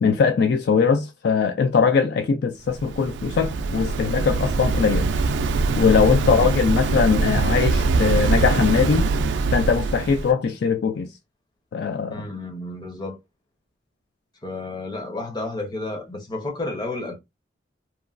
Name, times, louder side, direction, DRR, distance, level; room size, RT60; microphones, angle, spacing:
voice 1, 0.0-5.1 5.7-9.1 9.5-11.1 11.7-12.2, left 5 dB, 60° left, 0.3 m, -21 dB
Waves surf, 2.6-10.3, right 3 dB, 70° right, 0.3 m, -23 dB
voice 2, 6.2-6.5 12.1-13.2 14.4-17.2, left 2 dB, 25° left, 0.7 m, -31 dB
3.0 x 2.2 x 2.4 m
head